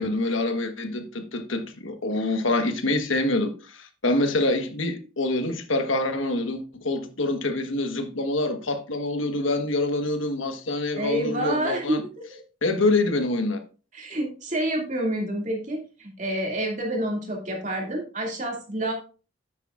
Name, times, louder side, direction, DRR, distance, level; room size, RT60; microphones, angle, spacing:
voice 1, 0.0-12.0 12.6-13.6, left 2 dB, 90° left, 1.3 m, -26 dB
voice 2, 10.9-12.4 13.9-18.9, right 1 dB, 40° right, 2.4 m, -28 dB
9.8 x 8.9 x 2.5 m
head